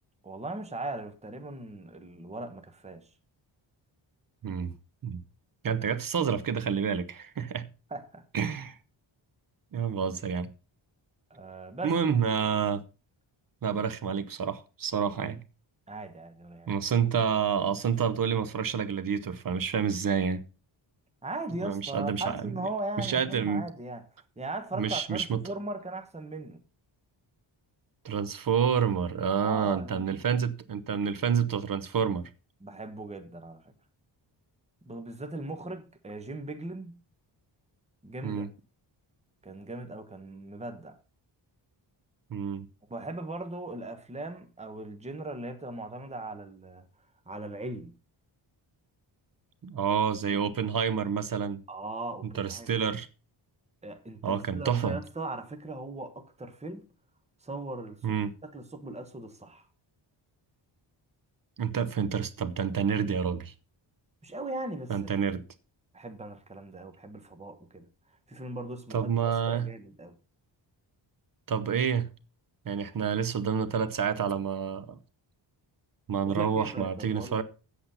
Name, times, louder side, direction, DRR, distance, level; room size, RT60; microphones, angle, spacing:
voice 1, 0.2-3.1 7.9-8.2 11.3-12.2 15.9-16.8 21.2-24.0 24.4-26.6 29.4-30.2 32.6-33.7 34.8-37.0 38.0-38.5 39.4-41.0 42.9-46.9 47.3-47.9 51.7-52.8 53.8-56.9 57.4-58.1 58.4-59.7 64.2-65.1 65.9-67.9 68.3-70.2 76.2-77.4, right 2 dB, 15° right, 1.2 m, -39 dB
voice 2, 5.6-7.7 8.3-8.8 9.7-10.5 11.8-12.8 13.6-15.4 16.7-20.4 21.6-22.5 23.0-23.6 24.7-25.4 28.0-32.2 38.2-38.5 42.3-42.7 49.6-51.6 52.3-53.1 54.2-55.0 58.0-58.3 61.6-63.5 64.9-65.4 68.9-69.7 71.5-72.1 72.7-75.0 76.1-77.4, right 7 dB, 45° right, 0.8 m, -28 dB
8.4 x 8.1 x 5.5 m
wide cardioid pair, 155°, 47 cm